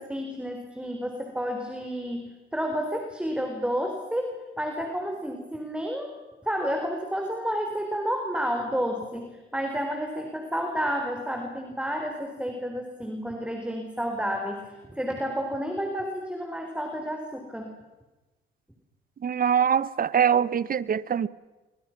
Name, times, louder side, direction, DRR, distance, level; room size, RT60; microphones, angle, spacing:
voice 1, 0.0-6.2 6.4-17.7, equal, 5° right, 3 dB, 4.3 m, -31 dB
voice 2, 19.2-21.3, right 8 dB, 45° right, 18 dB, 1.1 m, -23 dB
29.5 x 25.0 x 6.1 m, 1.1 s
cardioid pair, 90°, 20 cm